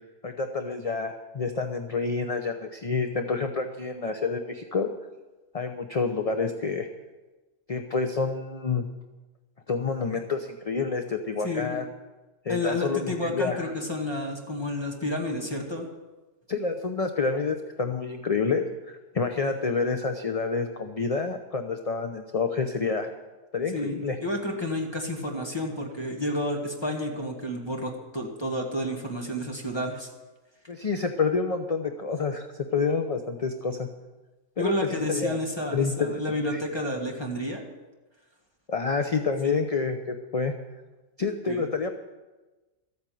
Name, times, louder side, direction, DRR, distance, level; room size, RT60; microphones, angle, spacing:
voice 1, 0.2-4.9 5.5-6.9 7.7-8.8 9.7-11.9 12.4-13.7 16.5-23.1 23.5-24.2 30.7-33.9 34.6-35.4 35.7-36.2 36.5-36.6 38.7-40.6 41.2-41.9, left 4 dB, 35° left, 6 dB, 0.6 m, -28 dB
voice 2, 11.4-11.7 12.5-15.9 23.7-30.1 34.6-37.6 39.4-39.6 41.5-41.6, left 1 dB, 20° left, 0 dB, 1.6 m, -30 dB
13.5 x 8.8 x 7.7 m, 1.2 s
omnidirectional pair, 1.4 m